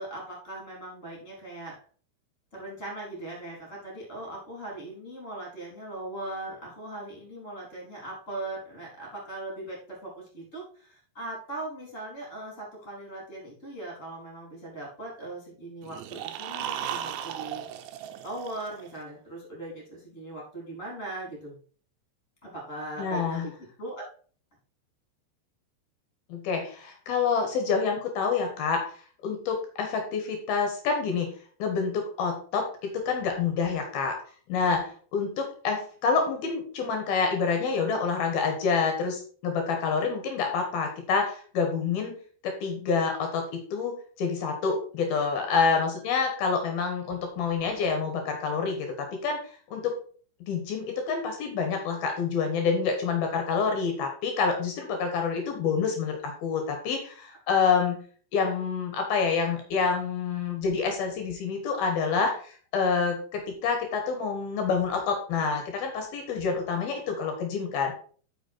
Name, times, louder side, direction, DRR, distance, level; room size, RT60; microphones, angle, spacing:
voice 1, 0.0-1.7 2.5-17.7 18.2-21.6 22.4-23.5 23.8-24.0, right 2 dB, 20° left, -2 dB, 3.6 m, -39 dB
sound 1, 15.8-19.0, right 10 dB, 80° right, 2.7 m, -36 dB
voice 2, 23.0-23.5 26.3-28.8 29.2-31.3 31.6-34.2 34.5-42.1 42.4-49.4 49.7-49.9 50.4-58.0 58.3-68.0, left 5 dB, 65° left, 4 dB, 2.8 m, -27 dB
8.1 x 6.1 x 4.5 m, 0.44 s
omnidirectional pair, 5.2 m